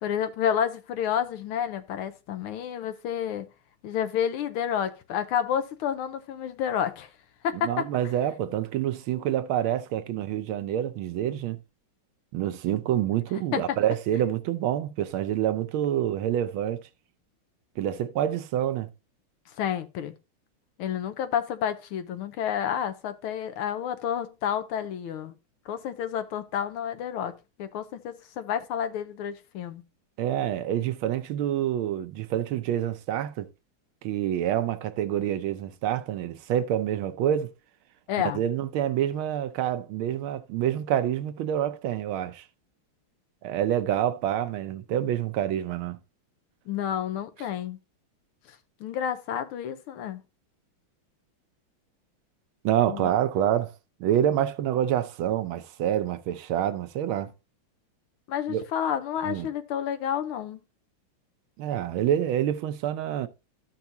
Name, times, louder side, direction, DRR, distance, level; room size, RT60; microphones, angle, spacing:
voice 1, 0.0-3.5 3.8-7.1 7.4-7.9 13.5-13.8 19.6-20.1 20.8-25.3 25.7-29.8 38.1-38.4 46.7-47.8 48.5-50.2 52.9-53.1 58.3-60.6, left 9 dB, 90° left, 1.7 m, -30 dB
voice 2, 7.6-11.6 12.3-16.8 17.8-18.9 30.2-33.5 34.0-37.5 38.3-42.4 43.4-46.0 52.6-53.7 54.0-57.3 58.5-58.6 59.2-59.5 61.6-63.3, right 11 dB, 80° right, 1.5 m, -27 dB
13.0 x 5.9 x 2.7 m
omnidirectional pair, 2.3 m